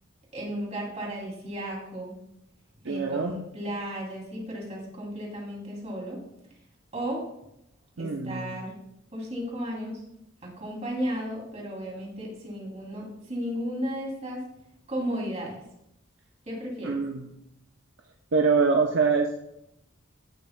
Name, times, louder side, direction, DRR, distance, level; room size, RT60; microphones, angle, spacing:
voice 1, 0.3-2.1 2.8-6.2 6.9-7.2 8.0-8.8 9.1-10.1 10.4-14.4 14.9-15.5 16.4-17.0, equal, 35° right, -2 dB, 2.9 m, -34 dB
voice 2, 2.8-3.4 8.0-8.6 16.8-17.2 18.3-19.4, right 4 dB, 65° right, 2 dB, 0.7 m, -24 dB
15.5 x 6.9 x 2.2 m, 0.81 s
head